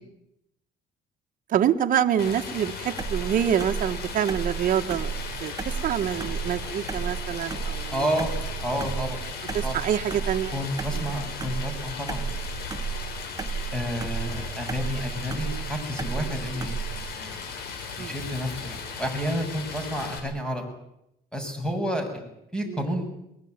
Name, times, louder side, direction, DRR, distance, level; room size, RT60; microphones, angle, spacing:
voice 1, 1.5-5.1 5.4-8.2 9.5-10.6 10.9-11.1 18.0-18.1 22.7-22.8, right 9 dB, 55° right, 5 dB, 1.5 m, -26 dB
Stream, 2.2-20.2, left 5 dB, 70° left, 6.9 m, -37 dB
sound 1, 3.0-17.1, right 6 dB, 20° right, 1.4 m, -33 dB
voice 2, 7.9-8.3 8.6-9.2 9.6-9.7 10.5-12.3 13.7-17.3 18.0-20.6 21.3-23.1, equal, 5° left, 5 dB, 7.5 m, -30 dB
22.5 x 21.0 x 9.7 m, 0.83 s
cardioid pair, 110°, 17 cm